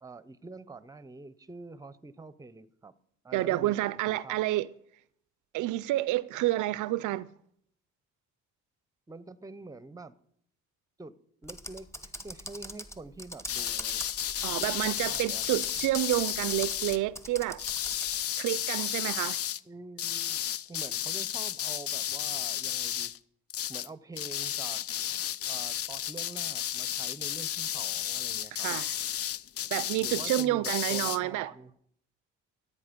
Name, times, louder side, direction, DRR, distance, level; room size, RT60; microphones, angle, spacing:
voice 1, 0.0-2.9 3.2-4.5 9.1-10.1 11.0-11.1 11.4-14.0 14.5-15.6 19.6-20.4 20.7-23.1 23.7-24.8 25.5-28.7 30.0-31.7, right 3 dB, 10° right, 0.7 m, -46 dB
voice 2, 3.3-4.7 5.5-7.3 14.4-17.6 18.4-19.4 28.5-28.9 29.7-31.5, right 16 dB, 85° right, 0.5 m, -29 dB
Computer keyboard, 11.4-18.2, left 1 dB, 10° left, 1.1 m, -42 dB
sound 1, 13.5-17.0 17.6-19.6 20.0-23.2 23.5-23.9 24.2-31.2, left 11 dB, 50° left, 0.5 m, -33 dB
15.5 x 8.6 x 5.2 m
cardioid pair, 90°, 30 cm